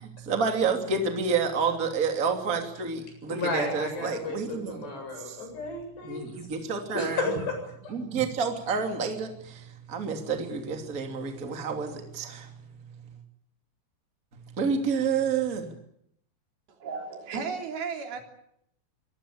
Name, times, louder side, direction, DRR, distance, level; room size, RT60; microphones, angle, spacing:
voice 1, 0.3-4.7 6.1-6.2 6.5-7.3 7.9-9.3 9.9-11.9 12.2-12.3 14.6-15.6, right 5 dB, 25° right, 4 dB, 2.7 m, -28 dB
voice 2, 3.3-6.3 6.9-7.6 7.8-7.9, left 3 dB, 75° left, 4 dB, 10.0 m, -32 dB
voice 3, 16.7-18.2, right 5 dB, 60° right, 3 dB, 5.1 m, -34 dB
24.5 x 19.0 x 8.7 m, 0.74 s
omnidirectional pair, 4.9 m